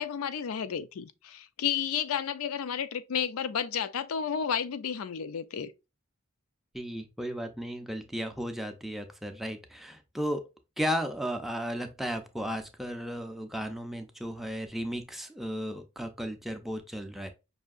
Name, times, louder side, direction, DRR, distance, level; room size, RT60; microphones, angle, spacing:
voice 1, 0.0-5.7, left 8 dB, 75° left, 0.4 m, -32 dB
voice 2, 6.7-10.4 10.8-17.3, equal, ahead, 0.5 m, -34 dB
5.5 x 2.7 x 2.4 m
head